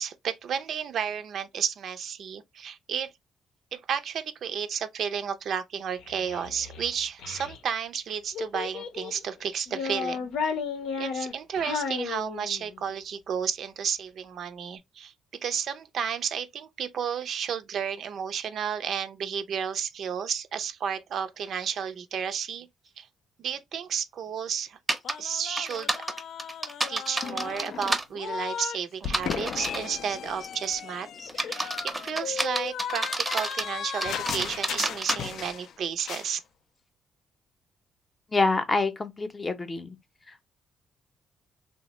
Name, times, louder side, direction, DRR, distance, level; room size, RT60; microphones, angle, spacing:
voice 1, 0.0-3.1 3.7-10.3 11.0-15.1 15.4-22.7 23.0-23.1 23.4-24.8 25.2-26.0 26.9-31.1 31.3-36.4, right 7 dB, 65° right, 0.4 m, -32 dB
Child speech kid speaking, 5.9-7.6 8.3-9.2 9.7-12.8, left 6 dB, 85° left, 0.7 m, -33 dB
sound 1, 24.9-25.1 25.6-28.0 29.0-29.9 30.4-30.7 31.3-33.7 34.0-35.2, right 2 dB, 15° right, 0.6 m, -29 dB
sound 2, 25.0-28.8 29.0-35.7 36.0-36.3, left 8 dB, 70° left, 0.3 m, -36 dB
voice 2, 38.3-40.0 40.3-40.5, left 3 dB, 25° left, 0.6 m, -27 dB
3.2 x 2.1 x 2.9 m
cardioid pair, 90°, 0 cm